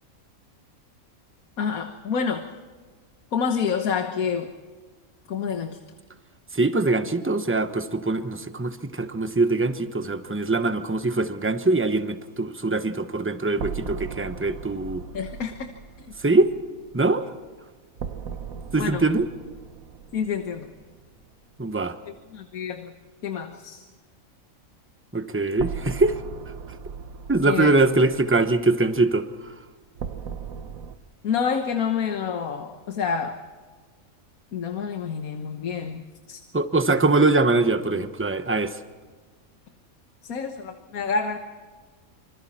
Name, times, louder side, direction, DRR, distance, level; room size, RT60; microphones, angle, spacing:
voice 1, 1.6-2.5 3.3-4.5 5.3-5.8 15.1-15.7 16.0-16.1 18.8-19.0 20.1-20.7 22.3-22.9 23.2-23.9 27.4-27.7 31.2-33.4 34.5-36.4 40.2-41.4, left 6 dB, 80° left, 6 dB, 1.6 m, -28 dB
voice 2, 6.5-15.0 16.2-16.5 16.9-17.3 18.7-19.2 21.6-22.0 25.1-26.2 27.3-29.5 36.5-38.8, right 2 dB, 10° right, 9 dB, 0.9 m, -23 dB
sound 1, 13.5-21.3 21.6-21.7 25.5-31.0, right 6 dB, 75° right, 1.5 m, -38 dB
26.5 x 26.0 x 4.3 m, 1.5 s
omnidirectional pair, 1.5 m